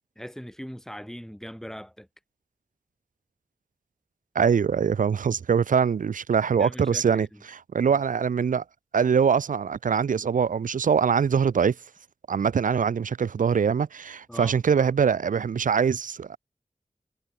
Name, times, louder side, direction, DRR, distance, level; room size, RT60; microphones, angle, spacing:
voice 1, 0.2-2.1 6.6-7.3 7.9-8.0 14.3-14.5, equal, 5° left, 5.1 m, -40 dB
voice 2, 4.4-8.6 8.9-11.8 12.3-16.4, right 6 dB, 85° right, 0.4 m, -23 dB
wide cardioid pair, 65°, 13 cm